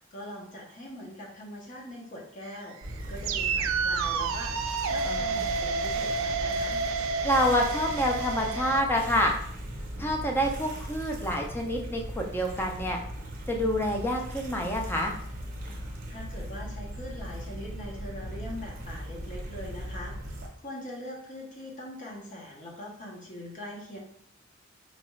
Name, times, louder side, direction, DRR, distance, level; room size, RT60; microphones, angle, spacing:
voice 1, 0.1-2.8 3.1-6.8 16.1-20.1 20.6-24.0, left 1 dB, 40° left, -2 dB, 0.8 m, -42 dB
sound 1, 2.4-8.8, right 4 dB, 85° right, 0.3 m, -30 dB
sound 2, 2.8-20.5, equal, 45° right, 0.7 m, -38 dB
voice 2, 5.0-5.4 7.2-9.3 10.0-13.0 13.5-15.1, equal, 10° left, 1 dB, 0.5 m, -27 dB
4.0 x 2.3 x 3.0 m, 0.64 s
head